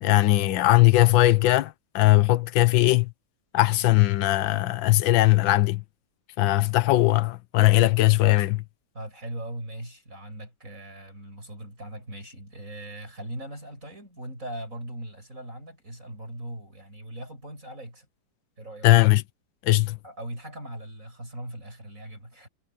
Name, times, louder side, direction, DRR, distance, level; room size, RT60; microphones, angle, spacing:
voice 1, 0.0-3.1 3.5-5.8 6.4-8.6 18.8-19.2 19.6-20.0, left 17 dB, 85° left, 1.5 m, -19 dB
voice 2, 8.9-18.1 18.6-18.9 20.0-22.5, right 1 dB, 45° right, 7.7 m, -39 dB
omnidirectional pair, 2.0 m